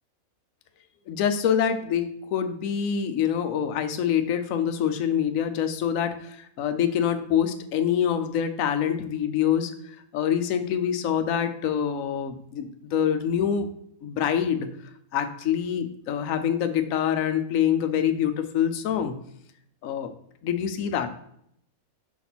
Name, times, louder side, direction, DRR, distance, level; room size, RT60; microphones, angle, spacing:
voice 1, 1.1-13.7 14.0-14.7 15.1-19.1 19.8-20.1 20.4-21.1, left 8 dB, 70° left, 7 dB, 1.1 m, -25 dB
5.0 x 4.1 x 6.0 m, 0.71 s
omnidirectional pair, 1.5 m